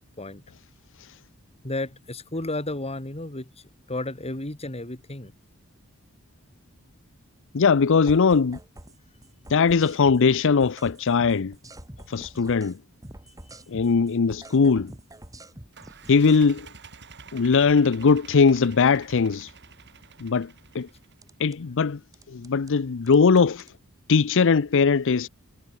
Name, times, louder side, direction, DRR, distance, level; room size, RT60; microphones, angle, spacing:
voice 1, 1.6-3.5 3.9-5.3, left 2 dB, 30° left, 3.3 m, -32 dB
voice 2, 7.5-8.6 9.5-11.5 12.1-12.8 13.7-14.9 16.1-16.7 17.3-19.5 20.2-20.9 21.4-22.0 22.3-23.6 24.1-25.3, left 5 dB, 60° left, 0.6 m, -20 dB
sound 1, 8.1-9.0 9.2-12.8 13.0-16.4 21.2-21.6 22.1-22.7 23.1-23.7, right 1 dB, 15° right, 3.8 m, -45 dB
sound 2, 15.7-21.3, right 5 dB, 55° right, 6.3 m, -48 dB
head